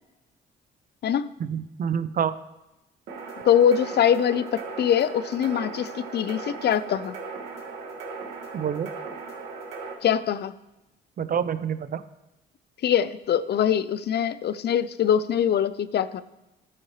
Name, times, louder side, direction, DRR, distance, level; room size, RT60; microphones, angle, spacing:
voice 1, 1.4-2.4 8.5-8.9 11.2-12.0, right 8 dB, 45° right, 13 dB, 0.6 m, -27 dB
sound 1, 3.1-9.9, right 4 dB, 75° right, 2.0 m, -38 dB
voice 2, 3.4-7.1 10.0-10.5 12.8-16.2, left 9 dB, 55° left, 15 dB, 0.5 m, -23 dB
13.0 x 8.7 x 3.2 m, 0.99 s
cardioid pair, 90°, 20 cm